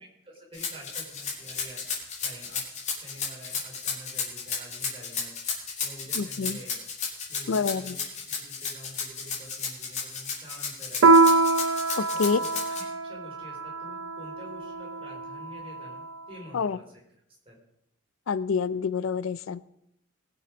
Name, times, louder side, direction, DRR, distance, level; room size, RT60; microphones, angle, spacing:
voice 1, 0.2-1.8 2.2-5.3 5.8-6.8 7.3-11.1 12.1-17.0 17.5-17.6, equal, 25° right, -2 dB, 4.3 m, -47 dB
Rattle (instrument), 0.5-12.8, left 6 dB, 35° left, 2.8 m, -33 dB
voice 2, 6.2-6.6 7.5-7.9 12.0-12.4 16.5-16.8 18.3-19.6, left 5 dB, 80° left, 16 dB, 0.4 m, -27 dB
Piano, 11.0-16.0, right 3 dB, 85° right, 0.7 m, -24 dB
20.5 x 7.0 x 5.1 m, 0.77 s
head